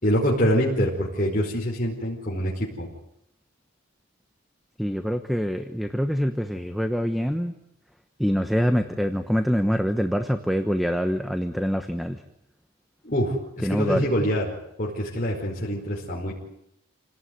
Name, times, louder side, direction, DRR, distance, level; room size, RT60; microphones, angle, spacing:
voice 1, 0.0-2.9 13.0-14.5 14.8-16.3, equal, 40° left, -4 dB, 5.2 m, -25 dB
voice 2, 4.8-7.5 8.2-12.2 13.6-14.1, equal, ahead, 8 dB, 1.0 m, -25 dB
28.0 x 18.5 x 9.5 m, 0.79 s
head